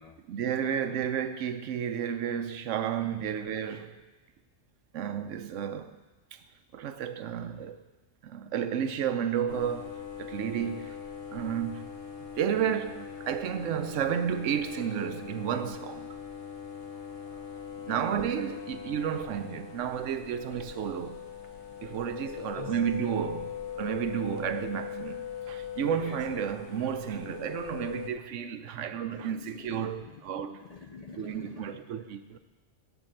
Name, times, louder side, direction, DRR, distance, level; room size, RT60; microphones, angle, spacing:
voice 1, 0.3-4.0 4.9-6.0 6.3-6.4 6.7-7.8 8.2-10.9 11.3-11.9 12.4-16.1 17.8-21.2 21.8-30.6 31.2-32.4, right 8 dB, 90° right, 1.0 m, -32 dB
sound 1, 9.5-28.1, left 8 dB, 70° left, 1.2 m, -41 dB
voice 2, 10.6-10.9 16.9-17.4 18.5-18.6 22.3-22.8 25.8-26.4 27.2-27.3 29.1-31.9, left 5 dB, 55° left, 0.4 m, -46 dB
11.0 x 4.6 x 7.7 m
omnidirectional pair, 1.2 m